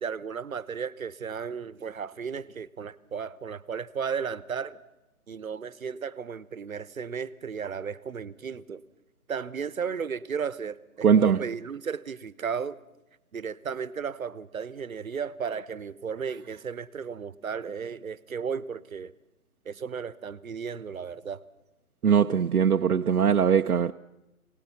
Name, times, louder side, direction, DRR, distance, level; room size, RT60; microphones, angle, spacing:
voice 1, 0.0-4.8 5.3-8.8 9.3-12.8 13.3-19.1 19.6-21.4, right 6 dB, 65° right, 1.0 m, -34 dB
voice 2, 11.0-11.4 22.0-23.9, right 7 dB, 85° right, 0.6 m, -21 dB
21.0 x 18.5 x 6.9 m
figure-of-eight pair, 150°, 44 cm